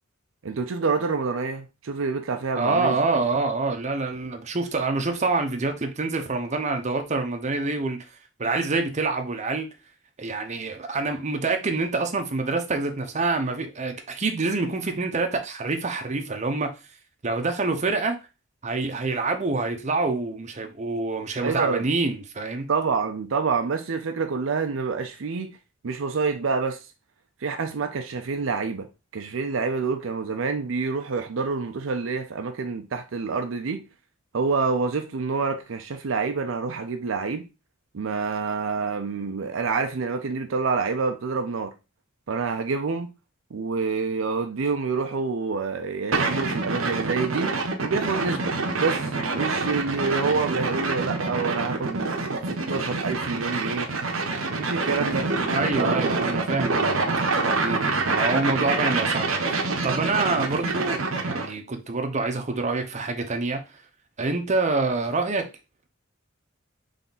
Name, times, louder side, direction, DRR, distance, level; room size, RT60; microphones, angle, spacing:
voice 1, 0.4-3.2 21.4-21.9 22.7-25.6 25.8-26.9 27.4-33.8 34.3-37.4 37.9-41.7 42.3-43.1 43.5-47.5 47.8-52.1 52.5-54.1 54.5-55.3 55.8-56.1, right 4 dB, 70° right, 0.5 m, -27 dB
voice 2, 2.5-8.0 8.4-9.7 10.2-16.7 17.2-18.2 18.6-22.7 55.5-59.4 59.8-63.6 64.2-65.5, right 3 dB, 35° right, 0.7 m, -26 dB
sound 1, 46.1-61.5, right 3 dB, 85° right, 0.9 m, -26 dB
3.7 x 3.4 x 4.0 m
head